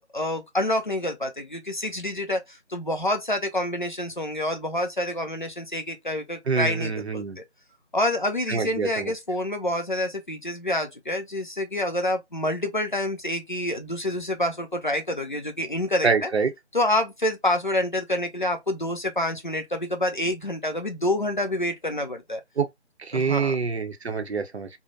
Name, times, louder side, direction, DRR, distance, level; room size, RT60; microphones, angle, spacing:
voice 1, 0.0-7.4 7.9-16.3 16.7-22.4 23.1-23.6, left 1 dB, 45° left, 0.4 m, -27 dB
voice 2, 6.5-7.4 8.5-9.1 16.0-16.5 22.6-22.7 23.0-24.7, right 5 dB, 70° right, 0.6 m, -25 dB
2.5 x 2.0 x 2.5 m
figure-of-eight pair, 170°, 34 cm